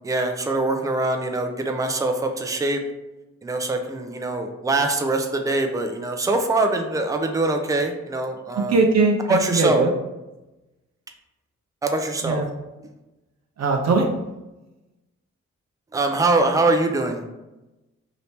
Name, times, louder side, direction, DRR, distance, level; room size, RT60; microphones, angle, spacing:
voice 1, 0.0-2.8 3.4-8.8 9.3-9.9 11.8-12.4 15.9-17.3, right 2 dB, 10° right, 4 dB, 0.5 m, -23 dB
voice 2, 8.6-9.9 12.2-12.5 13.6-14.1, right 3 dB, 60° right, 1 dB, 0.5 m, -20 dB
2.9 x 2.7 x 3.3 m, 1.0 s
cardioid pair, 50°, 31 cm